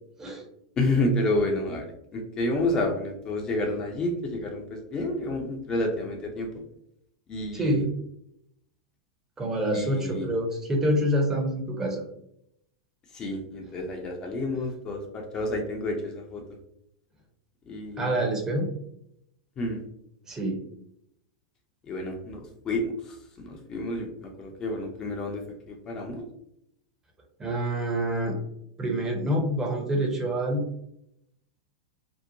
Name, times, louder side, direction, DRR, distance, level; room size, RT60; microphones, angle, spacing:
voice 1, 0.8-6.5 7.3-7.8 9.7-10.3 13.1-16.4 17.7-18.3 19.6-19.8 21.9-26.2, left 1 dB, 30° left, 1 dB, 0.5 m, -30 dB
voice 2, 7.5-7.9 9.4-12.0 18.0-18.7 20.3-20.6 27.4-28.3 28.8-30.6, right 1 dB, 20° right, 0 dB, 0.7 m, -26 dB
2.7 x 2.1 x 2.7 m, 0.76 s
hypercardioid pair, 95°, 2 cm